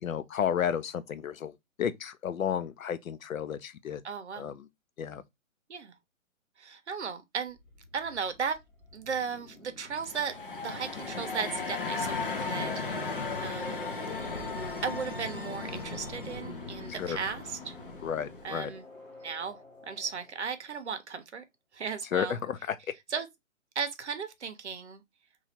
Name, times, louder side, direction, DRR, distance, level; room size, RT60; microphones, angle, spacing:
voice 1, 0.0-1.5 1.8-4.0 4.3-4.7 5.0-5.2 16.9-17.2 18.0-18.7 22.1-22.8, left 8 dB, 80° left, 0.6 m, -32 dB
voice 2, 4.0-4.5 5.7-5.9 6.6-7.6 7.9-8.6 8.9-12.7 13.4-13.8 14.8-17.7 18.4-18.8 19.2-21.4 21.7-22.4 23.1-23.3 23.8-25.0, right 6 dB, 55° right, 0.7 m, -36 dB
sound 1, 7.5-20.9, left 2 dB, ahead, 1.1 m, -49 dB
sound 2, 9.9-18.6, left 4 dB, 40° left, 0.5 m, -36 dB
3.0 x 2.4 x 4.2 m
hypercardioid pair, 180°, 41 cm